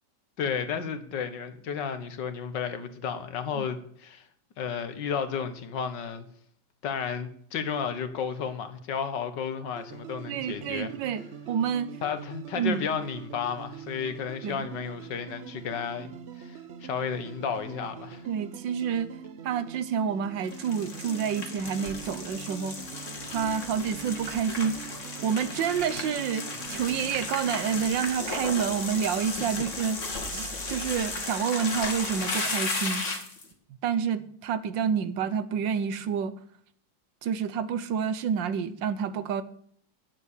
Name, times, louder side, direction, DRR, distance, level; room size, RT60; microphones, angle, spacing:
voice 1, 0.4-4.3 4.6-6.3 6.8-10.9 12.0-18.2 29.5-29.6, left 7 dB, 75° left, 10 dB, 1.9 m, -33 dB
sound 1, 9.8-27.9, right 8 dB, 50° right, 0.9 m, -44 dB
voice 2, 10.3-11.9 12.5-12.9 14.4-14.7 18.3-19.1 19.4-22.8 23.3-24.9 25.2-30.0 30.3-33.0 33.8-36.3 37.2-39.4, right 7 dB, 85° right, 14 dB, 1.6 m, -29 dB
sound 2, 20.4-33.4, left 3 dB, 45° left, 2.3 m, -35 dB
10.0 x 7.5 x 8.4 m, 0.63 s
omnidirectional pair, 1.9 m